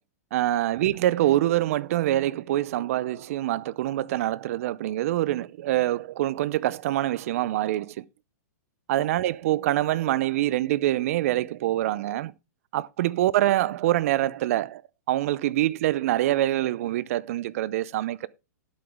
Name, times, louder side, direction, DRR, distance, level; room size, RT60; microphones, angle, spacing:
voice 1, 0.3-8.0 8.9-12.3 12.7-14.8 15.1-18.3, right 14 dB, 55° right, 0.6 m, -25 dB
11.0 x 8.1 x 3.6 m
hypercardioid pair, 145°, 9 cm